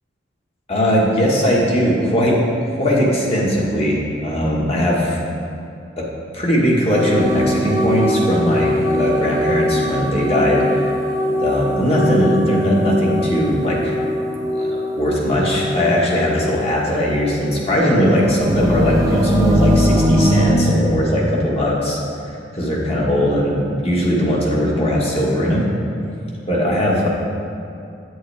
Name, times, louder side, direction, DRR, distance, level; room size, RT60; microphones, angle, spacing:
voice 1, 0.7-2.4 2.8-5.2 6.0-6.1 6.3-10.6 11.4-13.9 14.5-22.0 22.5-25.6 26.5-27.1, equal, 30° left, -4 dB, 1.5 m, -19 dB
sound 1, 6.9-16.7 17.0-20.5, equal, 20° right, 0.8 m, -21 dB
8.7 x 7.9 x 3.4 m, 2.6 s
head